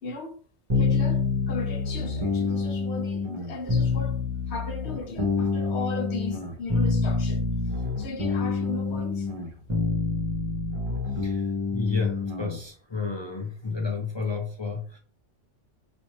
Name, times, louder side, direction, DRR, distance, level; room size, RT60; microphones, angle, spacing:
voice 1, 0.0-0.4 0.8-4.1 4.5-7.4 8.0-9.3, left 3 dB, 70° left, 0.9 m, -36 dB
sound 1, 0.7-12.6, left 3 dB, 30° right, 0.7 m, -27 dB
voice 2, 11.1-15.0, left 4 dB, 40° left, 0.4 m, -31 dB
4.2 x 2.5 x 3.0 m
omnidirectional pair, 1.2 m